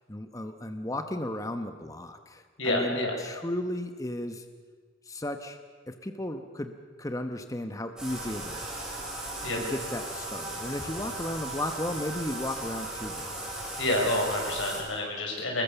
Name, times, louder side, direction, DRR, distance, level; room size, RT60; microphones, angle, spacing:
voice 1, 0.1-4.4 5.0-5.6 5.9-8.8 9.5-13.7 15.4-15.5, left 1 dB, 15° left, 7 dB, 1.0 m, -35 dB
voice 2, 2.6-3.1 9.4-9.6 13.8-15.6, left 1 dB, 85° left, 1 dB, 6.2 m, -28 dB
Bathtub (filling or washing), 8.0-14.8, right 2 dB, 5° right, 6.7 m, -37 dB
25.5 x 21.0 x 7.1 m, 1.5 s
head